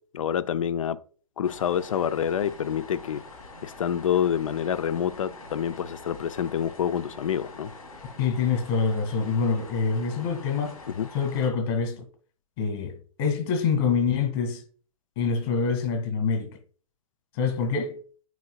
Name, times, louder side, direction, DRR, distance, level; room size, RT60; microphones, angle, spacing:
voice 1, 0.1-1.0 1.4-3.2 3.6-7.7 10.9-11.1, left 9 dB, 65° left, 0.6 m, -27 dB
sound 1, 1.4-11.5, left 2 dB, 85° left, 2.5 m, -45 dB
voice 2, 8.2-10.8 11.1-12.0 12.6-14.6 15.2-16.6 17.3-18.0, left 5 dB, 45° left, 2.0 m, -26 dB
9.3 x 4.7 x 2.3 m
hypercardioid pair, 120°, 18 cm